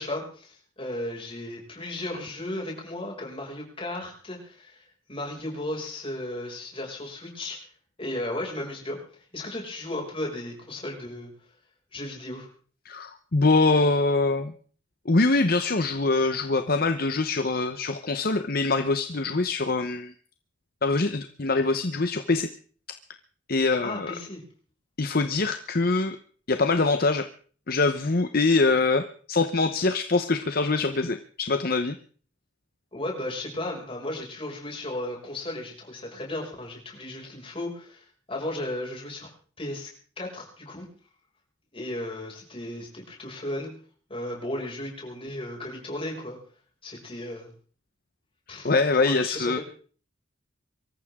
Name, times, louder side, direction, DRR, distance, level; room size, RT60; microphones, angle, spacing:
voice 1, 0.0-7.7 8.0-9.0 9.3-11.3 11.9-12.5 23.8-24.4 32.9-39.3 39.6-39.9 40.2-40.9 41.7-43.7 44.1-46.4 46.8-47.5 48.5-48.7 49.0-49.6, left 1 dB, 30° left, -1 dB, 6.2 m, -35 dB
voice 2, 12.8-14.5 15.0-20.1 20.8-22.5 23.5-24.1 25.0-26.2 26.5-27.3 27.7-32.0 48.6-49.6, left 3 dB, 50° left, 9 dB, 1.0 m, -24 dB
24.0 x 14.5 x 3.7 m, 0.43 s
head